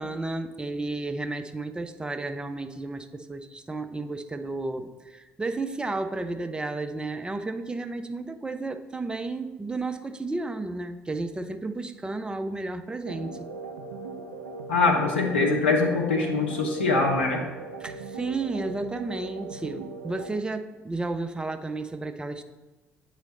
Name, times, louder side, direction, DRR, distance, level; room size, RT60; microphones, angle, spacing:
voice 1, 0.0-13.5 17.8-22.4, right 2 dB, 15° right, 9 dB, 0.5 m, -32 dB
sound 1, 13.0-20.4, right 4 dB, 85° right, 0.4 m, -39 dB
voice 2, 14.7-17.4, left 3 dB, 80° left, 1 dB, 0.6 m, -23 dB
8.1 x 3.2 x 3.8 m, 1.2 s
figure-of-eight pair, 50°, 6 cm